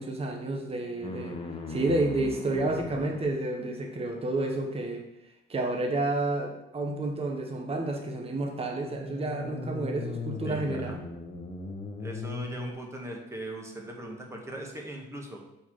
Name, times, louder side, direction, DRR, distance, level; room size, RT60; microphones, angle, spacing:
voice 1, 0.0-1.4 1.7-5.0 5.5-11.0, right 2 dB, 30° right, 2 dB, 1.0 m, -30 dB
sound 1, 1.0-3.4 8.7-12.7, left 3 dB, 25° left, 1.1 m, -38 dB
voice 2, 10.4-11.0 12.0-15.4, right 1 dB, 15° right, 1 dB, 1.6 m, -40 dB
6.8 x 4.4 x 4.7 m, 0.87 s
cardioid pair, 90°, 20 cm